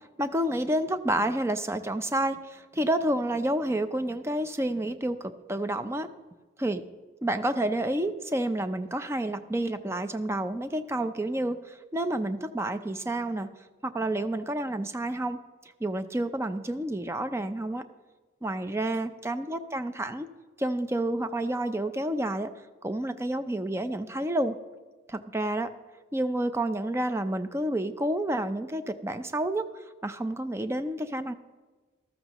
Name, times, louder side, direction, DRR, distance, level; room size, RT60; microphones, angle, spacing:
voice 1, 0.2-6.1 6.6-6.8 7.2-13.5 13.8-15.4 15.8-17.8 18.4-20.3 20.6-22.5 22.8-24.6 25.1-25.7 26.1-29.7 30.0-31.3, right 1 dB, 15° right, 10 dB, 0.4 m, -29 dB
13.5 x 13.0 x 3.0 m, 1.3 s
head